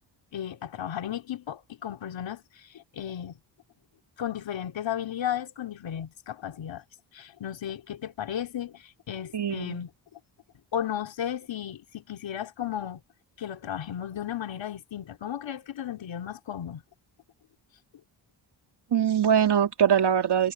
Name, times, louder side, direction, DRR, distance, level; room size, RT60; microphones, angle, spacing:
voice 1, 0.3-3.4 4.2-6.8 7.1-9.9 10.7-13.0 13.4-16.8, left 10 dB, 70° left, 3.4 m, -34 dB
voice 2, 9.3-9.8 18.9-20.5, right 8 dB, 60° right, 2.6 m, -22 dB
supercardioid pair, 60°, 46 cm